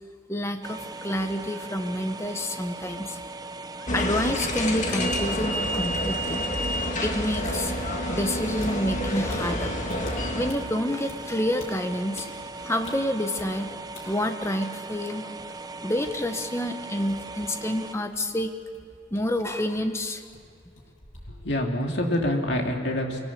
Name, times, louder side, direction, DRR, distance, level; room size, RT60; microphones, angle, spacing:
voice 1, 0.3-3.2 3.9-6.7 7.0-7.8 8.1-9.7 10.3-12.3 12.6-15.3 15.8-18.5 19.1-20.2, left 1 dB, 15° left, 6 dB, 1.1 m, -28 dB
sound 1, 0.6-18.0, right 3 dB, 20° right, 0.5 m, -39 dB
sound 2, 3.9-10.5, equal, 40° left, 1.8 m, -28 dB
sound 3, 8.5-14.0 14.3-22.5, left 2 dB, 85° left, 7.5 m, -47 dB
voice 2, 21.3-23.2, left 1 dB, 60° left, 1 dB, 2.6 m, -26 dB
25.0 x 17.5 x 8.6 m, 2.2 s
head